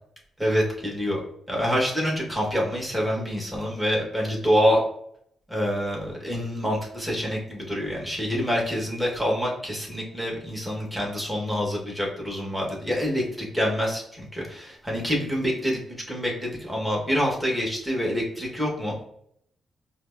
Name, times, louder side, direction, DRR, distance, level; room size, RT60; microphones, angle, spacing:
voice 1, 0.4-1.2 1.5-4.8 5.5-15.8 16.1-19.1, equal, 5° right, -3 dB, 1.5 m, -26 dB
5.0 x 2.1 x 2.6 m, 0.72 s
supercardioid pair, 55°, 0 cm